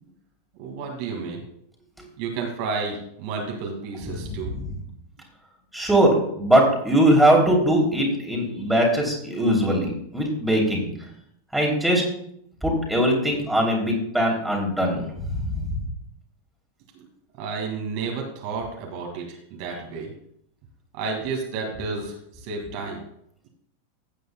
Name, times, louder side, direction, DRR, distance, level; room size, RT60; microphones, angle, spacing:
voice 1, 0.6-1.4 2.2-4.6 17.4-20.1 20.9-22.1 22.4-23.0, right 4 dB, 45° right, 1 dB, 2.2 m, -31 dB
voice 2, 5.7-10.9 11.5-12.0 12.6-15.7, right 1 dB, 5° right, -1 dB, 3.1 m, -21 dB
15.5 x 9.3 x 2.3 m, 0.71 s
figure-of-eight pair, 90°, 0 cm